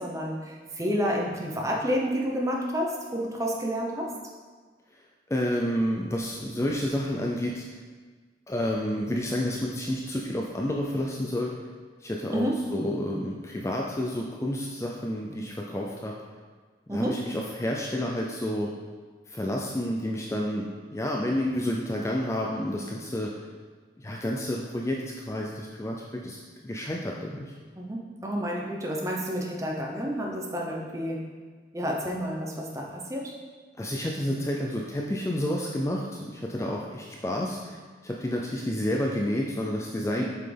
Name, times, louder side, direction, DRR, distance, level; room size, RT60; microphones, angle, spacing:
voice 1, 0.0-4.1 12.3-12.6 16.9-17.2 27.8-31.2 31.7-33.3, equal, 15° right, -1 dB, 0.8 m, -30 dB
voice 2, 5.3-7.6 8.5-11.5 12.0-12.5 12.7-16.1 16.9-18.7 19.3-23.5 24.0-25.0 25.3-26.4 26.6-27.5 33.8-37.8 38.0-40.2, left 1 dB, 15° left, -1 dB, 0.4 m, -30 dB
7.6 x 5.6 x 3.4 m, 1.5 s
head